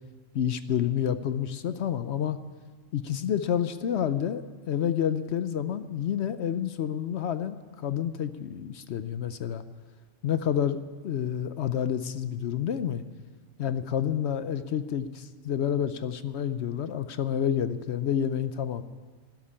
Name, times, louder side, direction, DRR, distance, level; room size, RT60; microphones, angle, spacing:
voice 1, 0.3-2.4 2.9-9.6 10.2-10.8 11.0-13.0 13.6-18.8, left 9 dB, 65° left, 12 dB, 0.8 m, -29 dB
13.0 x 11.0 x 8.6 m, 1.4 s
omnidirectional pair, 1.3 m